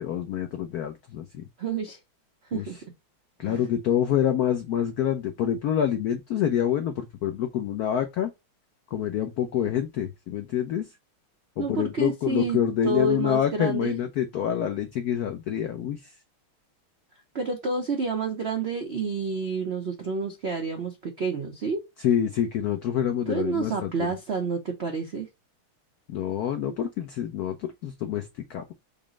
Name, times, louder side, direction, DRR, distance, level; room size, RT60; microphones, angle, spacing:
voice 1, 0.0-1.5 2.5-2.7 3.4-8.3 8.9-10.9 11.6-16.1 22.0-24.1 26.1-28.7, left 9 dB, 85° left, 0.8 m, -27 dB
voice 2, 1.6-2.0 2.5-2.8 3.4-3.6 11.6-12.6 12.8-14.0 17.3-21.8 23.3-25.3, right 4 dB, 75° right, 0.6 m, -29 dB
5.3 x 2.0 x 4.8 m
omnidirectional pair, 2.3 m